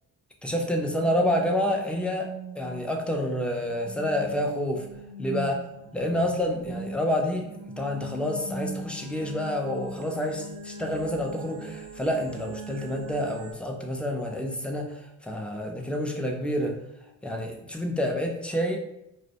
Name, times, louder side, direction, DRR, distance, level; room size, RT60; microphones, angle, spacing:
voice 1, 0.4-4.9 5.2-5.6 5.9-7.5 7.8-16.8 17.2-18.8, left 1 dB, 5° left, 2 dB, 0.4 m, -28 dB
sound 1, 0.9-13.5, right 2 dB, 55° right, 0.6 m, -41 dB
2.2 x 2.1 x 2.7 m, 0.83 s
supercardioid pair, 65°, 41 cm